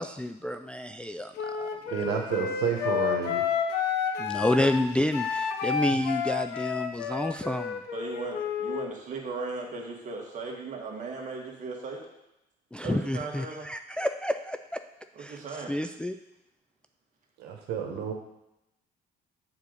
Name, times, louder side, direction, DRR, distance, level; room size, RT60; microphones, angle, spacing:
voice 1, 0.0-1.7 4.2-7.8 12.7-14.8 15.2-15.4 15.7-16.2, left 1 dB, 5° left, 7 dB, 0.3 m, -29 dB
Wind instrument woodwind instrument, 1.4-8.9, left 7 dB, 80° left, 0.9 m, -30 dB
voice 2, 1.9-3.4 17.4-18.1, right 7 dB, 80° right, 2 dB, 1.4 m, -30 dB
voice 3, 7.9-12.0 12.8-13.7 15.2-15.7, right 4 dB, 50° right, 0 dB, 1.9 m, -37 dB
7.1 x 4.0 x 6.5 m, 0.87 s
cardioid pair, 110°, 17 cm